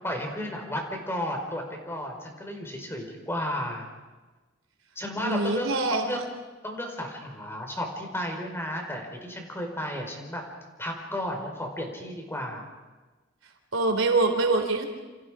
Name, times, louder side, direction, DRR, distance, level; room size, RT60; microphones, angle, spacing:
voice 1, 0.0-3.9 4.9-6.2 6.6-10.4 10.8-12.6, equal, 10° left, 2 dB, 4.7 m, -33 dB
voice 2, 5.2-6.2 13.7-14.9, right 3 dB, 75° right, 4 dB, 3.9 m, -24 dB
29.0 x 28.0 x 5.0 m, 1.3 s
head